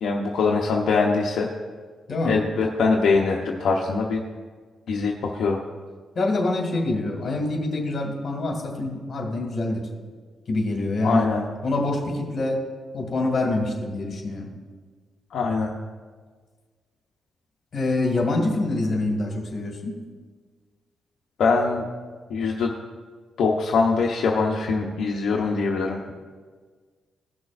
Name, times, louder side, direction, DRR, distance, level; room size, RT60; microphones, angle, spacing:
voice 1, 0.0-1.5 2.2-4.2 4.9-5.6 11.0-11.4 15.3-15.7 21.4-21.8 22.3-22.7 23.4-26.0, left 4 dB, 70° left, -1 dB, 0.8 m, -22 dB
voice 2, 6.2-9.8 10.5-11.3 11.6-12.6 12.9-14.5 17.7-20.0, left 2 dB, 45° left, 1 dB, 2.1 m, -25 dB
17.5 x 6.2 x 2.6 m, 1.5 s
cardioid pair, 135°, 0 cm